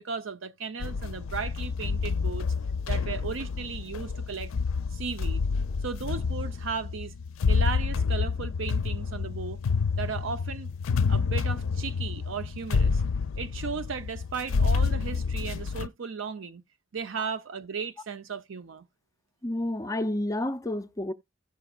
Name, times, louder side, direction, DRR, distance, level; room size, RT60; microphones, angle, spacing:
voice 1, 0.0-2.5 2.9-4.5 4.9-5.4 5.8-7.1 7.5-9.6 10.0-10.7 11.1-13.0 13.4-16.6 16.9-18.9, right 5 dB, 75° right, 0.6 m, -35 dB
sound 1, 0.8-15.9, left 5 dB, 90° left, 0.4 m, -28 dB
voice 2, 19.4-21.1, left 1 dB, 15° left, 0.5 m, -30 dB
15.5 x 6.0 x 2.3 m
head